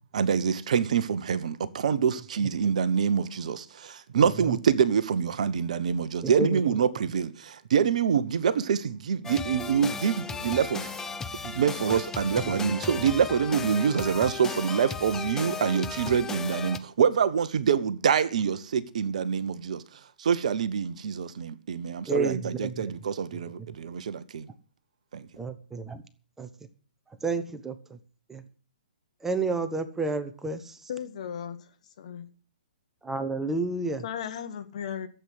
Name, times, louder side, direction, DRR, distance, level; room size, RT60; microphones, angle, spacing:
voice 1, 0.1-10.9 11.4-19.8 20.2-24.5 25.1-25.3, right 7 dB, 50° right, 1.0 m, -26 dB
voice 2, 6.2-6.6 22.1-22.9 25.4-26.0 26.4-26.5 27.2-27.8 28.3-28.4 29.2-30.7 33.0-34.0, right 3 dB, 5° right, 1.0 m, -30 dB
sound 1, 9.2-16.8, left 5 dB, 10° left, 0.7 m, -35 dB
voice 3, 30.9-31.7 32.0-32.3 34.0-35.1, left 8 dB, 45° left, 1.7 m, -36 dB
13.5 x 8.0 x 7.8 m
figure-of-eight pair, 125°, 5 cm